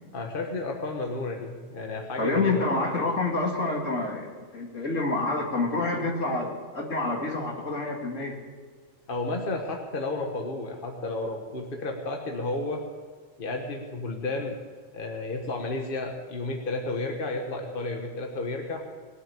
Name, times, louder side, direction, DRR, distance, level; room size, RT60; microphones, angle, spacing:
voice 1, 0.1-2.6 9.1-12.8 13.4-14.6 14.9-18.8, left 2 dB, 45° left, 2 dB, 1.5 m, -32 dB
voice 2, 2.2-8.4, left 3 dB, 75° left, -1 dB, 2.7 m, -28 dB
19.0 x 7.2 x 8.6 m, 1.5 s
omnidirectional pair, 1.3 m